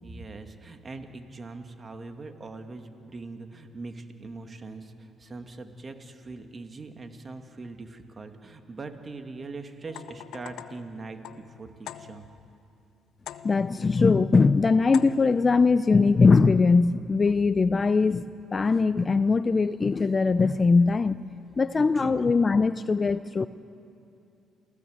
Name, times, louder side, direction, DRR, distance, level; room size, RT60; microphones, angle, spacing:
voice 1, 0.0-12.3 21.8-22.2, right 3 dB, 35° right, 6 dB, 2.2 m, -41 dB
sound 1, 9.9-12.5 13.3-13.9 14.9-15.5, left 11 dB, 75° left, 0.8 m, -44 dB
voice 2, 13.4-18.3 18.5-21.2 21.6-23.5, left 4 dB, 30° left, 13 dB, 0.5 m, -21 dB
28.0 x 16.5 x 8.0 m, 2.7 s
supercardioid pair, 75°, 0 cm